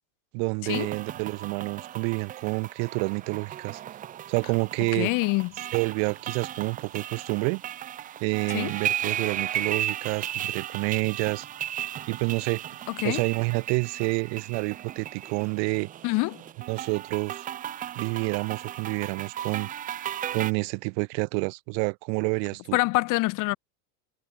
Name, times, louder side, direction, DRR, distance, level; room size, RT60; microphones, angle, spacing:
voice 1, 0.3-3.8 4.3-5.1 5.7-7.6 8.2-11.5 12.1-12.6 13.0-15.9 16.7-17.5 18.0-19.7 20.3-22.8, right 40 dB or more, 55° right, 1.0 m, -28 dB
sound 1, 0.7-20.5, right 11 dB, 20° right, 0.4 m, -35 dB
voice 2, 4.9-5.5 8.5-8.7 12.9-13.2 16.0-16.4 22.7-23.6, left 23 dB, 45° left, 1.0 m, -25 dB
supercardioid pair, 125°, 43 cm